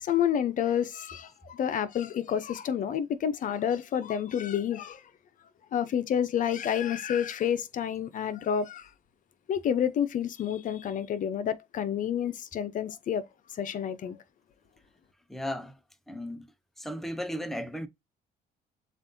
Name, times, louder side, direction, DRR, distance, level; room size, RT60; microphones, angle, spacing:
voice 1, 0.0-5.0 5.7-8.9 9.5-13.3 13.6-14.2, left 9 dB, 50° left, 0.7 m, -29 dB
voice 2, 15.3-15.8 16.1-16.5 16.8-17.9, equal, ahead, 0.6 m, -35 dB
7.2 x 2.5 x 2.7 m
cardioid pair, 110°, 17 cm